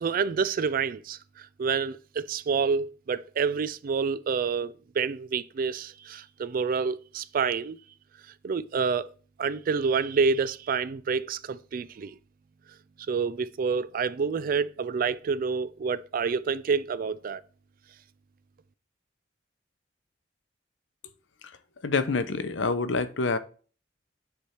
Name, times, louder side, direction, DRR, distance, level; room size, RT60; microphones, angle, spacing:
voice 1, 0.0-7.8 8.4-9.1 9.4-12.1 13.1-17.4, right 5 dB, 50° right, 0.4 m, -28 dB
voice 2, 21.8-23.4, left 4 dB, 80° left, 0.7 m, -26 dB
8.2 x 3.4 x 4.3 m
head